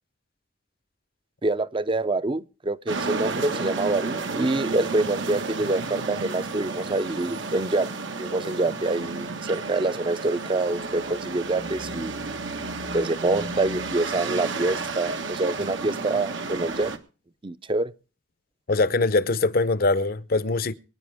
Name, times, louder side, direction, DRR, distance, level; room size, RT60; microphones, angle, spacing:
voice 1, 1.4-7.9 8.2-12.1 12.9-16.9 17.4-17.9, right 2 dB, 25° right, 0.6 m, -26 dB
sound 1, 2.9-17.0, right 3 dB, 80° right, 1.6 m, -32 dB
voice 2, 18.7-20.7, left 3 dB, 50° left, 0.7 m, -22 dB
23.5 x 9.8 x 3.5 m
head